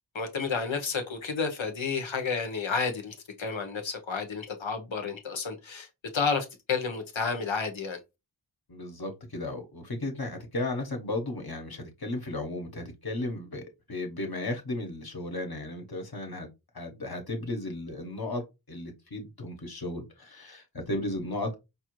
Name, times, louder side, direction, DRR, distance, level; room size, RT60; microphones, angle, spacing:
voice 1, 0.1-5.9 6.1-8.0, left 5 dB, 90° left, 0.9 m, -31 dB
voice 2, 8.7-16.5 16.7-18.4 18.7-21.5, left 2 dB, 55° left, 1.0 m, -35 dB
5.2 x 2.5 x 3.0 m
wide cardioid pair, 50°, 45 cm